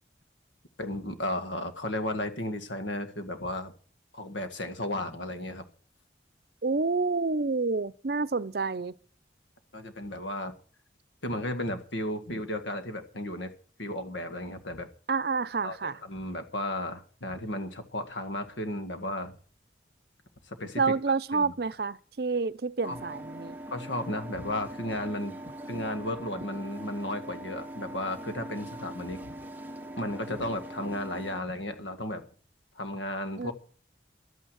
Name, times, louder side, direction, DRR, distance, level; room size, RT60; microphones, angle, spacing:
voice 1, 0.8-3.7 4.1-5.6 9.7-10.5 11.2-13.5 13.8-14.9 15.6-19.3 20.5-20.8 21.3-21.5 22.8-23.0 23.7-29.3 30.0-32.3 32.8-33.5, left 1 dB, 90° left, 1.8 m, -34 dB
voice 2, 6.6-8.9 15.1-16.0 20.8-23.6 33.4-33.5, right 4 dB, 55° right, 0.6 m, -28 dB
sound 1, 22.8-31.4, right 1 dB, 10° right, 0.8 m, -42 dB
12.0 x 9.0 x 7.9 m
head